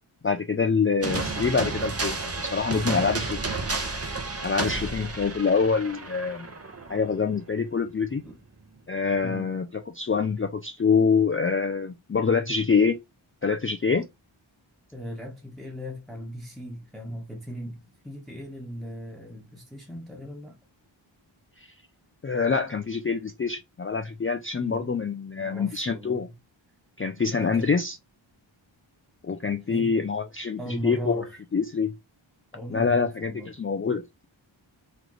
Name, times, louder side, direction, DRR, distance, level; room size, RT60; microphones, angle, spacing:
voice 1, 0.2-3.4 4.4-6.5 6.9-8.2 8.9-9.6 9.9-13.0 13.4-14.1 21.6-21.7 22.2-26.3 27.0-28.0 29.2-31.2 31.5-31.9 32.7-33.3 33.6-34.3, left 5 dB, 30° left, 0.4 m, -25 dB
sound 1, 1.0-7.6, right 3 dB, 30° right, 0.8 m, -32 dB
voice 2, 9.2-9.6 14.9-20.6 24.6-25.0 25.4-26.3 27.4-27.7 29.7-29.9 30.6-31.3 32.5-33.5, equal, ahead, 1.1 m, -38 dB
3.8 x 3.2 x 3.1 m
wide cardioid pair, 80°, 48 cm